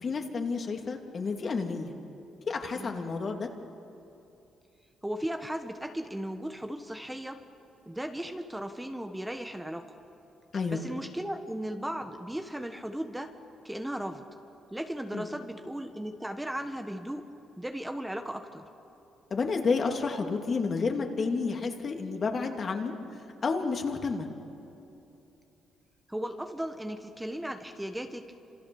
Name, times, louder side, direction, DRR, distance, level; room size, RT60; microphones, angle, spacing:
voice 1, 0.0-1.9 2.5-3.5 10.5-10.8 15.1-15.3 19.3-22.9 23.4-24.3, left 4 dB, 45° left, 3 dB, 2.7 m, -30 dB
voice 2, 2.7-3.1 5.0-7.4 7.8-9.9 10.7-13.3 13.6-14.2 14.7-17.3 17.6-18.6 26.1-28.3, right 1 dB, 5° right, 6 dB, 1.4 m, -36 dB
28.5 x 27.0 x 7.2 m, 2.8 s
cardioid pair, 90°, 0 cm